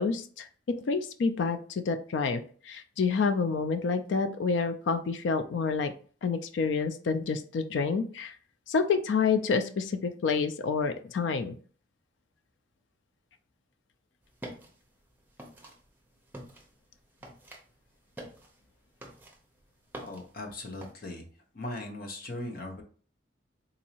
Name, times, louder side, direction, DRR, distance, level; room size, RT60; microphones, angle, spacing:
voice 1, 0.0-5.9 6.2-8.3 8.7-11.5, left 5 dB, 75° left, 9 dB, 0.3 m, -28 dB
sound 1, 14.2-20.9, right 1 dB, 10° right, 0.6 m, -48 dB
voice 2, 20.0-21.2 21.5-22.8, left 2 dB, 50° left, 3 dB, 0.8 m, -39 dB
3.9 x 2.6 x 2.8 m, 0.43 s
head